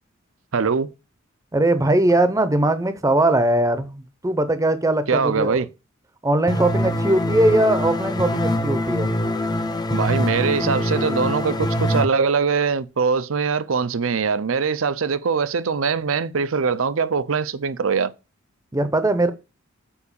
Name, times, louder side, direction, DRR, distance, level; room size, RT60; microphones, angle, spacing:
voice 1, 0.5-0.9 5.1-5.7 9.9-18.1, right 5 dB, 75° right, 0.6 m, -22 dB
voice 2, 1.5-5.7 6.2-9.1 18.7-19.3, right 1 dB, 15° right, 0.7 m, -20 dB
sound 1, 6.5-12.0, left 1 dB, 20° left, 0.6 m, -23 dB
7.2 x 4.6 x 6.9 m
head